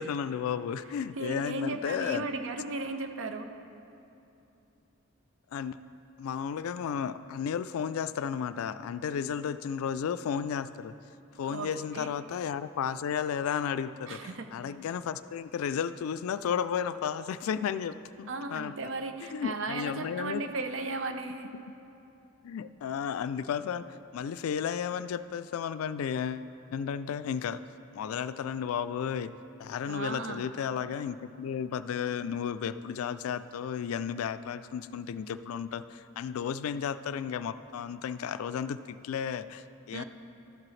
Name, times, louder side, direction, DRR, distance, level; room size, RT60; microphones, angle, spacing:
voice 1, 0.0-2.3 5.5-5.8 6.2-10.9 11.4-18.7 19.3-20.4 22.4-27.6 27.9-29.3 29.6-40.0, left 7 dB, 85° left, 13 dB, 0.3 m, -33 dB
voice 2, 1.1-3.5 11.4-12.1 14.1-14.5 18.3-21.5 29.9-30.5 39.9-40.0, right 3 dB, 65° right, 7 dB, 0.6 m, -36 dB
12.5 x 7.6 x 3.2 m, 2.9 s
head